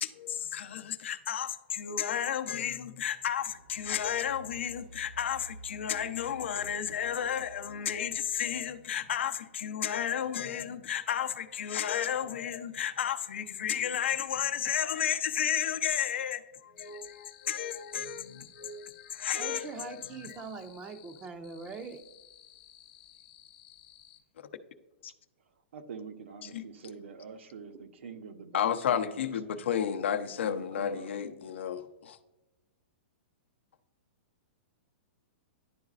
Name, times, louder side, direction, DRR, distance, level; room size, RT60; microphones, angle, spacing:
voice 1, 0.0-20.3 25.0-25.1 26.4-26.6 28.5-32.2, left 9 dB, 75° left, 0.5 m, -32 dB
sound 1, 3.4-11.1, right 1 dB, 55° right, 0.7 m, -52 dB
sound 2, 16.8-24.2, left 11 dB, 45° left, 0.9 m, -56 dB
voice 2, 19.3-22.1, right 4 dB, 15° right, 0.4 m, -42 dB
voice 3, 25.7-29.6 30.4-31.1, right 5 dB, 80° right, 0.8 m, -45 dB
10.5 x 3.9 x 2.4 m
hypercardioid pair, 165°, 6 cm